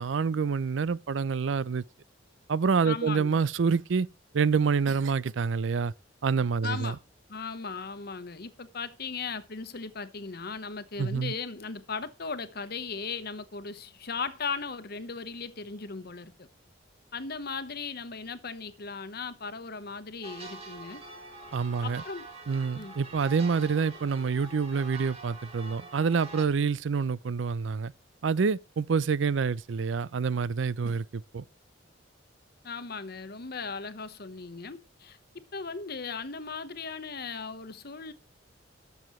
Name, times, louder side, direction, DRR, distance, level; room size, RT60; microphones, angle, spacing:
voice 1, 0.0-1.8 2.5-4.1 4.3-5.9 6.2-6.9 11.0-11.3 21.5-22.0 22.5-27.9 28.2-31.4, right 5 dB, 75° right, 0.5 m, -27 dB
voice 2, 2.8-3.4 6.6-7.0 7.3-16.5 17.1-21.0 21.8-22.3 22.7-22.9 32.6-35.2 35.5-38.1, left 5 dB, 55° left, 1.1 m, -37 dB
sound 1, 20.2-26.4, right 3 dB, 30° right, 3.0 m, -45 dB
20.0 x 7.1 x 3.1 m
head